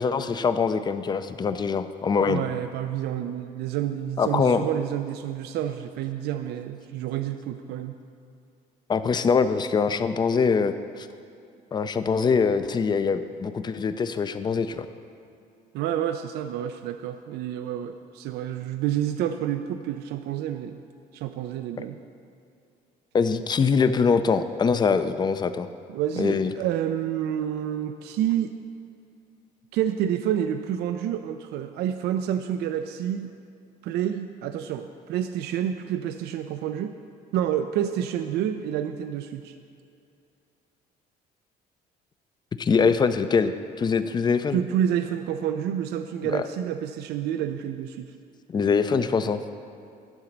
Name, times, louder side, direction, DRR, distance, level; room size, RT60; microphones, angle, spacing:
voice 1, 0.0-2.4 4.2-4.6 8.9-11.1 11.7-14.9 21.8-21.9 23.1-25.7 26.2-26.5 42.6-43.5 43.8-44.6 46.2-46.4 48.5-49.4, left 5 dB, 25° left, 11 dB, 0.4 m, -23 dB
voice 2, 2.3-8.0 15.7-20.8 21.1-22.0 25.9-28.5 29.7-33.3 33.8-37.0 37.3-39.5 44.5-48.1, right 10 dB, 75° right, 8 dB, 0.4 m, -29 dB
11.5 x 3.9 x 5.9 m, 2.5 s
cardioid pair, 110°, 17 cm